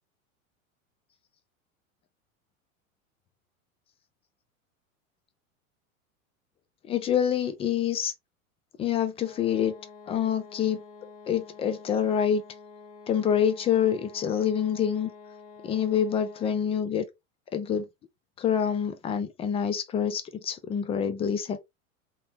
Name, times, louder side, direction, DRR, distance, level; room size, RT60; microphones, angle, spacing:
voice 1, 6.9-8.1 8.8-9.7 10.1-10.8 11.3-12.4 13.1-15.1 15.6-17.0 17.5-17.9 18.4-21.6, left 8 dB, 15° left, 0.3 m, -26 dB
sound 1, 9.2-16.9, left 4 dB, 35° left, 1.4 m, -48 dB
3.8 x 2.8 x 2.7 m
hypercardioid pair, 100°, 42 cm